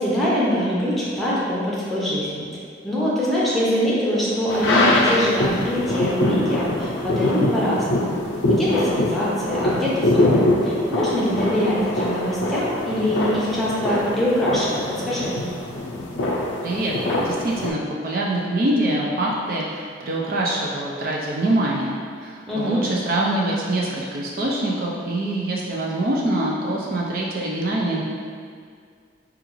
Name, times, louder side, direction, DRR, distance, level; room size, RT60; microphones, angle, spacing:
voice 1, 0.0-2.5 2.8-8.1 8.5-15.3 22.5-22.9, equal, ahead, -8 dB, 0.7 m, -23 dB
sound 1, 4.5-17.7, left 1 dB, 85° left, 0.5 m, -23 dB
voice 2, 16.6-28.0, right 1 dB, 50° right, -3 dB, 0.4 m, -24 dB
4.9 x 2.4 x 3.0 m, 2.1 s
head